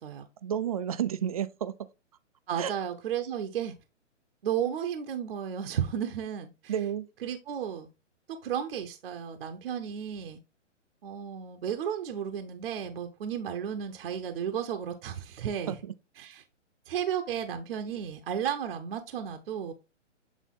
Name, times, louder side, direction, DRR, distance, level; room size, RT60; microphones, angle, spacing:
voice 1, 0.4-1.7 2.6-2.7 6.7-7.1 15.7-15.8, right 9 dB, 30° right, 0.4 m, -31 dB
voice 2, 2.5-3.7 4.4-6.7 7.2-7.9 8.3-10.4 11.0-15.8 16.2-16.4 16.9-19.7, right 9 dB, 50° right, 0.9 m, -33 dB
8.3 x 3.5 x 3.6 m
figure-of-eight pair, 135°, 37 cm